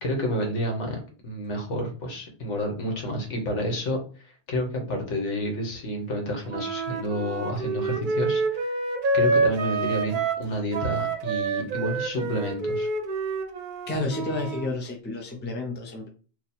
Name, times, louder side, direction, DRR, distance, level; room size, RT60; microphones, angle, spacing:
voice 1, 0.0-8.7 9.1-12.9, equal, 85° left, 2 dB, 1.3 m, -30 dB
Wind instrument woodwind instrument, 6.5-10.5 10.7-14.7, right 3 dB, 55° right, 0.6 m, -27 dB
voice 2, 13.9-16.1, left 2 dB, 15° left, 1 dB, 0.4 m, -30 dB
2.9 x 2.3 x 4.1 m, 0.39 s
omnidirectional pair, 1.2 m